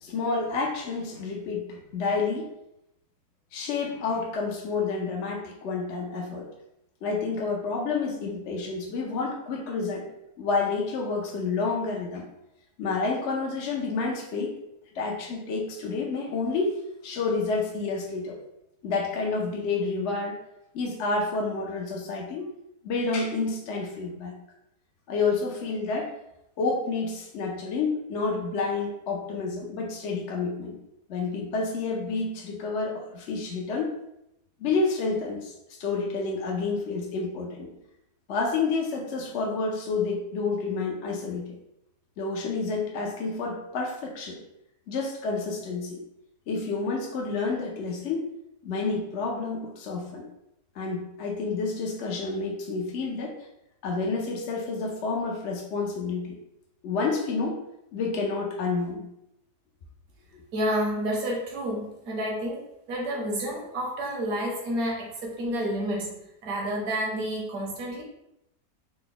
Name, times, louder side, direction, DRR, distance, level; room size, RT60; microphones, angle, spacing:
voice 1, 0.0-2.5 3.5-6.5 7.0-10.1 10.4-12.2 12.8-14.5 14.9-18.4 18.8-20.4 20.7-22.5 22.8-24.3 25.1-26.1 26.6-30.8 31.1-33.9 34.6-35.5 35.8-37.7 38.3-41.6 42.2-44.4 44.9-46.0 46.5-48.3 48.6-50.2 50.7-53.4 53.8-56.4 56.8-57.6 57.9-59.0, left 4 dB, 60° left, -1 dB, 0.8 m, -29 dB
voice 2, 60.5-68.0, equal, 70° right, -3 dB, 1.4 m, -30 dB
3.9 x 2.1 x 3.7 m, 0.83 s
omnidirectional pair, 1.6 m